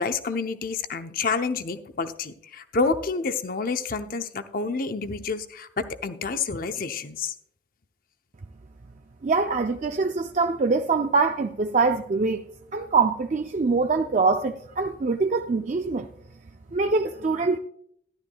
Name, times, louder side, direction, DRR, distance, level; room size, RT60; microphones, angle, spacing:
voice 1, 0.0-7.3, left 4 dB, 50° left, 0.7 m, -28 dB
voice 2, 9.2-12.4 12.7-16.1 16.7-17.6, right 4 dB, 40° right, 0.4 m, -24 dB
13.5 x 11.5 x 2.3 m
head